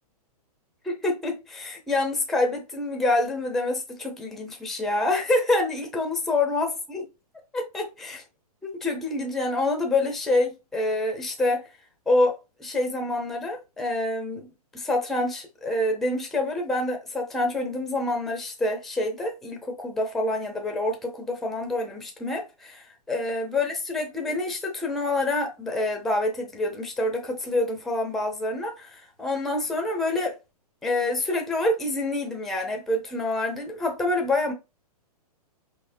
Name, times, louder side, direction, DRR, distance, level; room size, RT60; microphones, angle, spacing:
voice 1, 0.8-7.1 7.5-8.2 8.7-11.6 12.1-14.5 14.7-30.4 30.8-34.5, left 2 dB, ahead, 0.5 m, -27 dB
4.9 x 3.5 x 2.6 m
hypercardioid pair, 160°, 20 cm